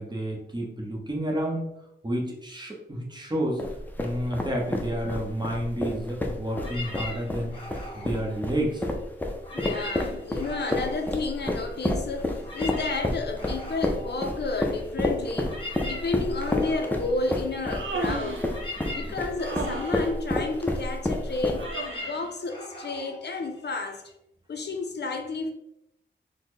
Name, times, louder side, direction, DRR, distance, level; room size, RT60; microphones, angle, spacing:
voice 1, 0.0-1.6 2.0-3.6 4.0-7.5 7.9-8.8 18.8-19.2, right 1 dB, 20° right, -1 dB, 0.9 m, -30 dB
sound 1, 3.6-21.9, left 1 dB, 10° left, 0.5 m, -30 dB
sound 2, 6.6-9.0 9.3-11.9 12.2-24.1, left 1 dB, 25° left, 0.9 m, -41 dB
voice 2, 9.5-15.6 15.8-18.4 18.9-21.7 22.0-24.0 24.5-25.5, left 3 dB, 60° left, 4 dB, 0.5 m, -31 dB
Human voice, 17.5-18.6 19.4-20.1 21.5-22.2, right 3 dB, 80° right, 0.5 m, -34 dB
3.9 x 2.1 x 3.1 m, 0.81 s
wide cardioid pair, 80°, 20 cm